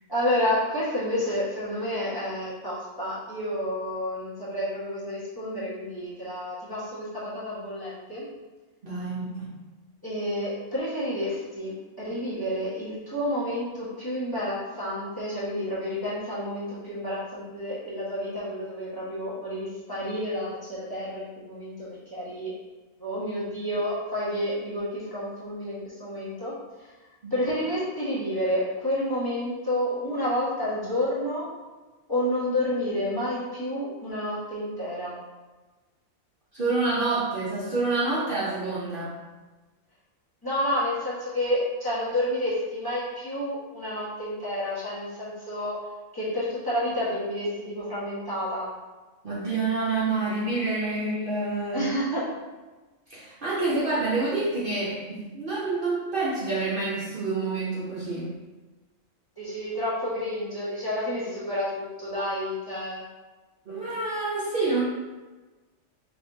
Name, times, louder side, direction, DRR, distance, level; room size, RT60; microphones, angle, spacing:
voice 1, 0.1-8.2 10.0-22.5 23.0-26.9 27.3-31.5 32.1-35.2 40.4-45.9 46.1-48.7 51.7-52.3 59.4-63.1, left 1 dB, 15° left, -10 dB, 1.4 m, -30 dB
voice 2, 8.8-9.5 27.2-27.3 36.5-39.2 49.2-51.9 53.1-58.3 63.7-64.8, right 3 dB, 45° right, -8 dB, 0.9 m, -28 dB
5.3 x 3.5 x 2.7 m, 1.2 s
omnidirectional pair, 1.4 m